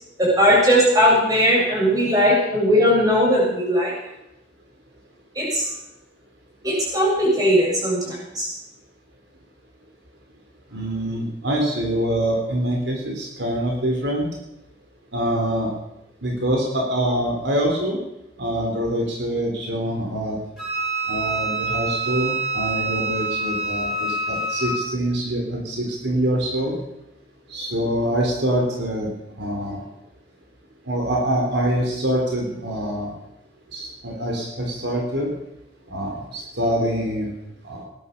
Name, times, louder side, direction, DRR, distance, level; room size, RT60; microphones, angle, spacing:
voice 1, 0.2-3.9 5.3-5.7 6.6-8.5, equal, 20° right, -4 dB, 7.8 m, -18 dB
voice 2, 10.7-14.3 15.1-15.7 16.2-18.0 18.4-20.4 21.1-26.7 27.5-29.1 29.4-29.8 30.9-33.1 33.7-35.3 35.9-37.3 37.6-37.8, right 1 dB, 70° right, 1 dB, 3.8 m, -25 dB
Wind instrument woodwind instrument, 20.6-24.8, right 2 dB, 5° right, 7.4 m, -26 dB
18.5 x 11.5 x 6.8 m, 0.85 s
head